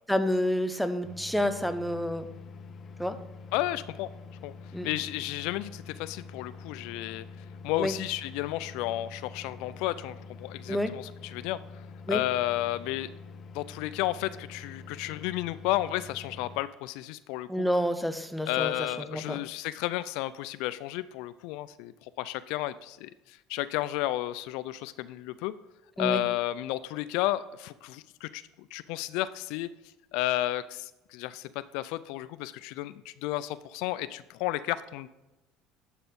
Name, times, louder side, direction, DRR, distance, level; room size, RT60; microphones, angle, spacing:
voice 1, 0.1-2.3 3.0-3.2 4.7-4.9 7.8-7.9 10.7-10.9 12.1-12.2 17.5-19.4 26.0-26.2, equal, ahead, 9 dB, 0.8 m, -29 dB
sound 1, 1.0-16.6, left 4 dB, 45° left, 0.7 m, -46 dB
voice 2, 3.5-4.1 4.4-4.5 4.8-7.2 7.6-11.6 12.1-13.1 13.5-17.6 18.5-25.5 26.0-28.4 28.7-29.7 30.1-35.1, left 15 dB, 75° left, 15 dB, 0.3 m, -32 dB
11.5 x 4.2 x 5.2 m, 1.0 s
supercardioid pair, 80°, 0 cm